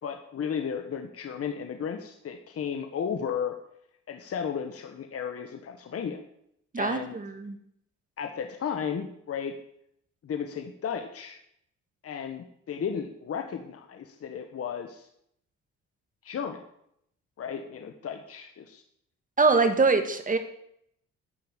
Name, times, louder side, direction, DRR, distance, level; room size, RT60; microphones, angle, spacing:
voice 1, 0.0-3.5 4.1-6.2 6.8-7.1 8.2-9.5 10.2-11.4 12.0-15.1 16.2-16.6 17.4-18.8, left 7 dB, 50° left, 6 dB, 1.3 m, -34 dB
voice 2, 6.7-7.6 19.4-20.4, right 4 dB, 25° right, 8 dB, 1.9 m, -23 dB
12.5 x 5.5 x 8.9 m, 0.71 s
cardioid pair, 90°, 30 cm